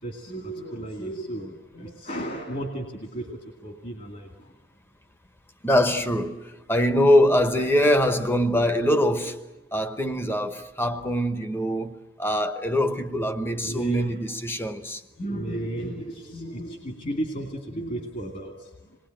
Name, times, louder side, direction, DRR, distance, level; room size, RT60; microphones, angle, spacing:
voice 1, 0.0-4.5 13.0-14.1 15.2-19.0, right 1 dB, 40° left, 2.3 m, -34 dB
voice 2, 5.6-9.4 9.7-15.0, equal, 10° left, 1.0 m, -23 dB
27.5 x 21.0 x 9.0 m
head